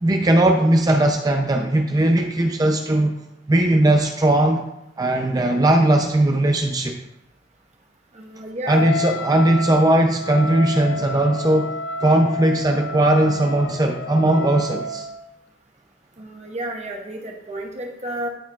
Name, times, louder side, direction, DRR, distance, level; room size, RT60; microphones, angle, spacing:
voice 1, 0.0-3.1 3.5-4.7 5.0-7.0 8.7-11.7 12.0-15.1, right 1 dB, 20° right, 3 dB, 0.4 m, -18 dB
voice 2, 8.1-8.9 16.2-18.3, right 1 dB, 35° right, 0 dB, 1.1 m, -31 dB
Wind instrument woodwind instrument, 8.7-15.3, left 2 dB, 70° left, 0.4 m, -30 dB
12.5 x 4.3 x 2.3 m, 0.88 s
head